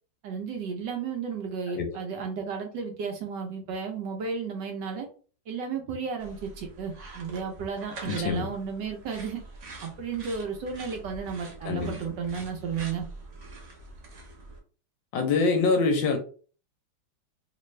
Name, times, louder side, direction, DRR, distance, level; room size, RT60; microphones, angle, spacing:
voice 1, 0.2-5.1 5.5-9.4 9.8-13.1, right 6 dB, 70° right, 3 dB, 1.1 m, -33 dB
sound 1, 6.2-14.6, right 2 dB, 50° right, 1.0 m, -45 dB
voice 2, 8.1-8.5 11.6-11.9 15.1-16.2, left 4 dB, 75° left, 5 dB, 1.2 m, -25 dB
3.3 x 2.5 x 3.1 m, 0.39 s
omnidirectional pair, 2.3 m